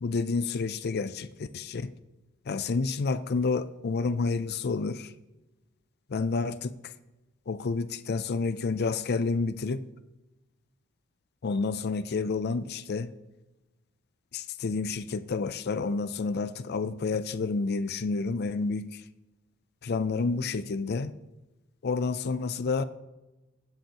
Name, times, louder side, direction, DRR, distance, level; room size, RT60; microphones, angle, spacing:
voice 1, 0.0-1.9 2.5-5.1 6.1-6.9 7.5-9.8 11.4-13.1 14.3-19.0 19.8-21.1 21.8-22.8, left 4 dB, 50° left, 12 dB, 0.5 m, -29 dB
17.5 x 7.8 x 2.9 m, 1.0 s
head